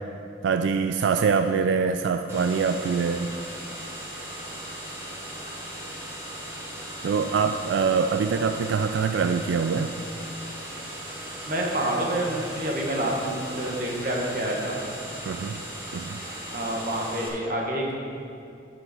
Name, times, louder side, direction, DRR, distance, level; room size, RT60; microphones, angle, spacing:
voice 1, 0.4-3.3 7.0-9.9 15.3-15.6 15.9-16.2, right 5 dB, 85° right, 8 dB, 0.3 m, -24 dB
sound 1, 2.3-17.3, right 1 dB, 15° right, 1.4 m, -38 dB
voice 2, 11.5-14.8 16.5-17.9, right 1 dB, 50° right, -1 dB, 1.5 m, -28 dB
11.5 x 6.6 x 4.3 m, 2.5 s
head